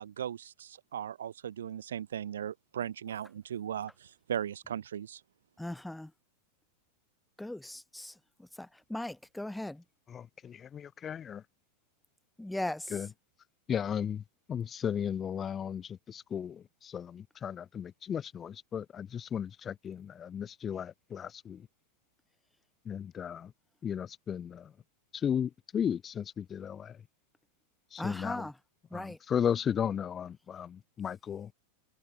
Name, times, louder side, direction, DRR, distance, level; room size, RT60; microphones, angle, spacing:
voice 1, 0.0-5.2, right 9 dB, 65° right, 0.4 m, -38 dB
voice 2, 5.6-6.1 7.4-9.8 12.4-12.9 28.0-28.5 28.9-29.2, left 1 dB, 5° left, 0.8 m, -38 dB
voice 3, 10.1-11.4 12.9-13.1 13.7-14.2 14.5-21.7 22.8-23.5 23.8-24.7 25.1-27.0 27.9-28.5 28.9-31.5, left 8 dB, 25° left, 1.4 m, -35 dB
figure-of-eight pair, 90°, 0 cm